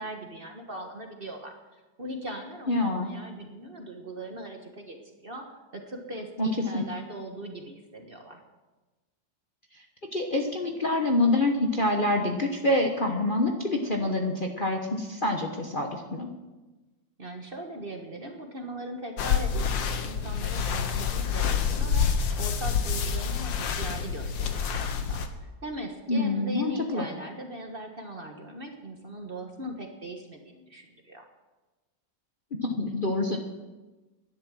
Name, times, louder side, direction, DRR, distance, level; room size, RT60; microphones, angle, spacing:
voice 1, 0.0-8.4 17.2-22.1 22.3-31.2, right 1 dB, 35° right, 3 dB, 1.4 m, -40 dB
voice 2, 2.7-3.1 6.4-6.5 6.7-6.8 10.1-16.3 26.1-27.0 32.6-33.4, left 2 dB, 35° left, 1 dB, 1.1 m, -26 dB
sound 1, 19.2-25.3, left 6 dB, 90° left, 1.8 m, -27 dB
11.5 x 11.0 x 7.6 m, 1.2 s
omnidirectional pair, 2.0 m